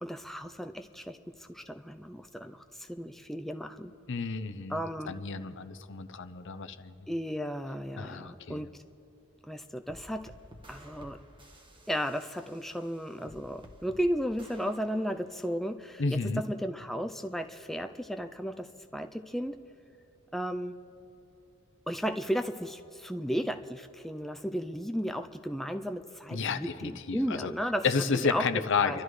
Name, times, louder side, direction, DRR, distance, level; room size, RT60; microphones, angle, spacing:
voice 1, 0.0-3.9 4.7-5.1 7.1-8.7 9.5-10.3 10.7-11.2 11.9-19.6 20.3-20.8 21.9-27.9 28.3-28.4 28.8-29.0, equal, ahead, 6 dB, 0.4 m, -34 dB
voice 2, 4.1-7.0 8.0-8.6 16.0-16.4 26.3-27.5 27.8-29.0, left 5 dB, 60° left, 10 dB, 0.7 m, -31 dB
sound 1, 9.9-15.5, equal, 25° right, 1.2 m, -54 dB
30.0 x 12.5 x 3.2 m, 2.8 s
head